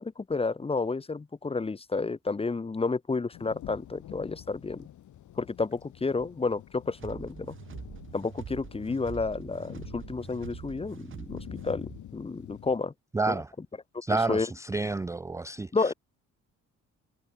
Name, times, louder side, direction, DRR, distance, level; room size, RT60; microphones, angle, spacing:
voice 1, 0.0-4.9 5.4-7.6 8.1-12.9 13.3-13.4 14.3-14.5 15.7-15.9, left 4 dB, 20° left, 0.9 m, -31 dB
sound 1, 3.3-12.8, left 12 dB, 75° left, 4.9 m, -47 dB
sound 2, 7.0-12.0, right 9 dB, 40° right, 0.8 m, -44 dB
voice 2, 13.1-13.5 14.0-15.9, right 3 dB, 10° right, 0.4 m, -30 dB
cardioid pair, 90°, 30 cm